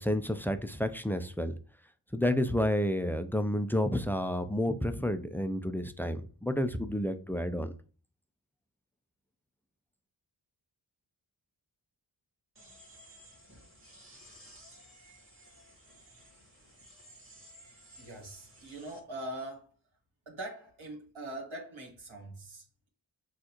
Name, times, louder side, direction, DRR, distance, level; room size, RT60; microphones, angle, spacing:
voice 1, 0.0-1.5 2.1-7.7, left 1 dB, 5° left, 10 dB, 0.4 m, -30 dB
sound 1, 12.5-19.0, equal, 25° right, 1.7 m, -56 dB
voice 2, 18.0-19.7 20.2-22.9, right 1 dB, 85° right, -3 dB, 1.5 m, -42 dB
6.2 x 2.5 x 2.9 m, 0.38 s
wide cardioid pair, 50°, 46 cm